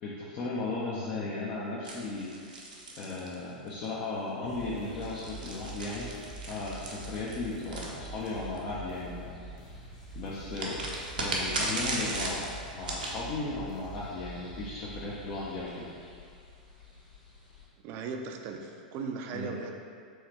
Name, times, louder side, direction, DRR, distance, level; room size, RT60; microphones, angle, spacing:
voice 1, 0.0-2.5 3.0-6.1 6.5-9.7 10.1-10.8 11.2-15.9 19.3-19.5, left 3 dB, 45° left, -6 dB, 0.6 m, -36 dB
sound 1, 1.8-3.8 4.8-8.6 10.5-13.2, right 2 dB, 80° right, 0.7 m, -36 dB
sound 2, 4.4-15.4, right 3 dB, 20° left, 0.9 m, -46 dB
sound 3, 4.8-17.7, left 3 dB, 80° left, 1.2 m, -54 dB
voice 2, 17.8-19.8, right 4 dB, 45° right, 4 dB, 0.5 m, -37 dB
4.7 x 3.2 x 2.9 m, 2.2 s
hypercardioid pair, 95°, 4 cm